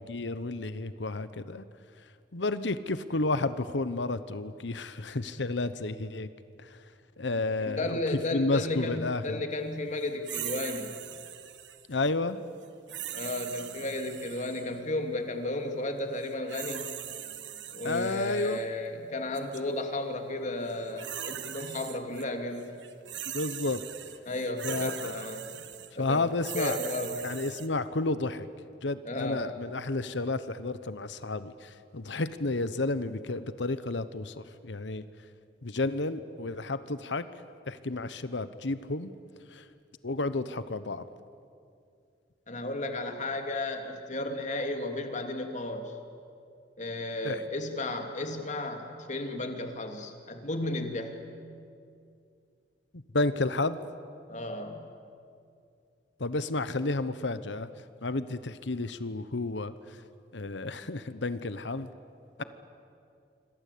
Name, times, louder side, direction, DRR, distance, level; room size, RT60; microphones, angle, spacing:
voice 1, 0.0-1.6 2.3-6.3 6.6-6.7 7.2-8.0 8.3-9.4 11.9-12.4 17.8-18.6 23.3-23.8 24.6-25.2 26.0-26.8 27.2-28.5 28.8-35.1 35.6-37.3 37.7-39.1 39.5-39.6 40.0-41.1 47.2-47.4 53.1-53.8 56.2-57.7 58.0-59.7 60.3-61.9, left 2 dB, 80° left, 13 dB, 1.1 m, -31 dB
voice 2, 7.6-11.0 13.1-16.9 17.7-22.7 24.2-25.6 26.0-26.3 26.5-27.2 29.0-29.5 42.5-45.9 46.8-51.2 54.3-54.9 62.4-62.5, left 2 dB, 45° left, 5 dB, 2.8 m, -34 dB
sound 1, 10.2-11.9 12.9-14.7 16.2-18.6 19.3-19.6 20.7-22.2 22.5-27.7, right 11 dB, 80° right, 1.5 m, -40 dB
27.0 x 25.5 x 8.6 m, 2.4 s
head